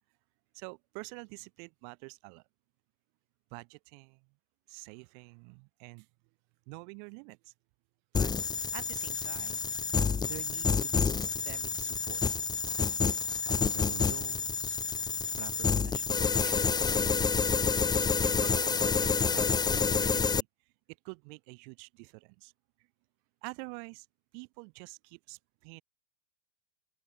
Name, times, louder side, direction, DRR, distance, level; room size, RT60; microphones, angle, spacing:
voice 1, 0.5-2.4 3.5-4.3 4.7-6.1 6.7-7.5 8.1-8.3 8.7-9.7 10.2-12.2 13.6-14.8 15.4-17.5 18.2-20.5 20.9-22.5 23.4-24.1 24.3-25.8, right 40 dB or more, 45° right, 5.5 m, -47 dB
sound 1, 8.1-20.4, left 5 dB, 10° left, 1.1 m, -28 dB
open air
hypercardioid pair, 120°, 34 cm